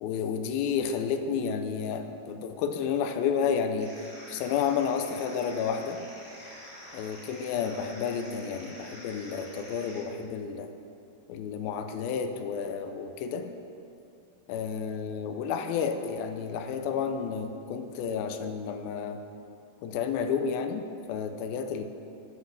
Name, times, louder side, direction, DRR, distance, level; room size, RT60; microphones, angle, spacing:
voice 1, 0.0-3.9 4.3-6.0 6.9-10.7 11.3-13.5 14.5-19.2 19.8-21.8, left 6 dB, 85° left, 7 dB, 2.4 m, -31 dB
sound 1, 3.8-10.0, equal, 5° left, 2.6 m, -47 dB
9.7 x 8.4 x 6.5 m, 2.5 s
omnidirectional pair, 4.3 m